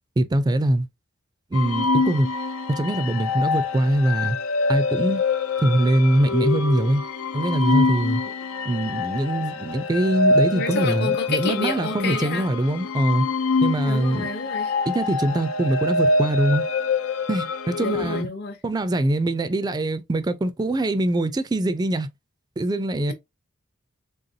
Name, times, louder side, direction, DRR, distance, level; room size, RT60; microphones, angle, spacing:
voice 1, 0.2-0.9 1.5-2.3 2.7-4.4 4.7-5.2 5.6-7.0 7.3-8.2 8.6-13.3 13.6-14.3 14.9-16.7 17.3-18.3 18.6-22.1 22.6-23.1, right 1 dB, 20° right, 0.4 m, -23 dB
sound 1, 1.5-18.2, left 3 dB, 90° left, 0.5 m, -25 dB
voice 2, 10.5-12.5 13.9-14.7 17.8-18.6, left 3 dB, 55° left, 0.8 m, -29 dB
3.9 x 3.4 x 2.7 m
head